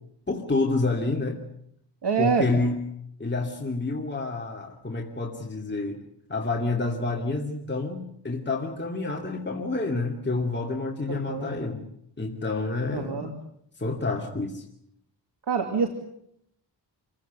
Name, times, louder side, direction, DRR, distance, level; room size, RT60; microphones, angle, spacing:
voice 1, 0.3-1.4 2.2-2.8 3.2-6.0 6.3-11.9 12.2-13.3 13.8-14.6, left 3 dB, 25° left, 1 dB, 2.7 m, -28 dB
voice 2, 2.0-2.5 11.1-11.5 12.9-13.3 15.5-15.9, right 5 dB, 65° right, 5 dB, 2.7 m, -26 dB
27.0 x 16.5 x 9.4 m, 0.73 s
wide cardioid pair, 95°, 43 cm